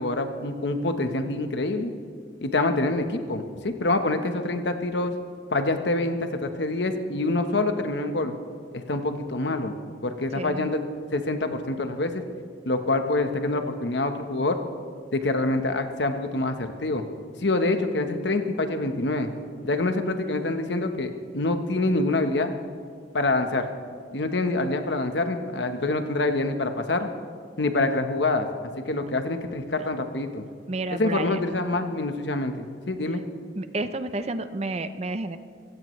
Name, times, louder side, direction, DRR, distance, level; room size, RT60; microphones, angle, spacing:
voice 1, 0.0-1.9 2.4-5.1 5.5-8.3 8.7-9.8 10.0-10.8 11.1-12.2 12.7-14.6 15.1-17.0 17.4-19.3 19.6-22.5 23.1-23.7 24.1-27.1 27.6-28.5 28.8-30.4 30.9-33.2, left 2 dB, 75° left, 7 dB, 1.1 m, -26 dB
voice 2, 10.3-10.7 30.7-31.4 33.6-35.4, right 2 dB, 35° right, 11 dB, 0.6 m, -30 dB
24.5 x 16.0 x 3.2 m, 2.1 s
head